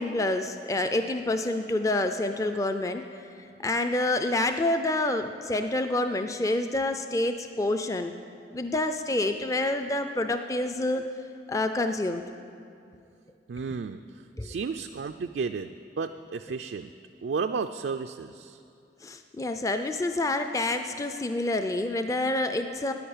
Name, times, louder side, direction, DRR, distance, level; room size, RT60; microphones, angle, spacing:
voice 1, 0.0-3.3 3.6-8.1 8.5-11.0 11.5-12.2 14.4-14.5 19.0-22.9, left 2 dB, 20° left, 7 dB, 0.4 m, -28 dB
voice 2, 13.5-14.0 14.4-16.9 17.2-18.6, right 5 dB, 70° right, 7 dB, 0.4 m, -33 dB
10.0 x 9.8 x 8.7 m, 2.5 s
head